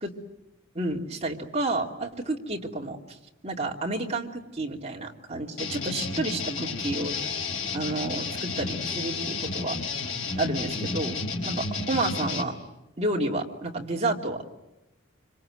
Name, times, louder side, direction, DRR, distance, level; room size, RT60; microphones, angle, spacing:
voice 1, 0.7-3.0 3.4-7.3 7.7-9.8 10.4-12.6 13.0-14.5, right 2 dB, 30° right, 0 dB, 2.7 m, -30 dB
sound 1, 5.6-12.4, left 4 dB, 75° left, 4.3 m, -31 dB
26.0 x 26.0 x 7.8 m, 0.96 s
head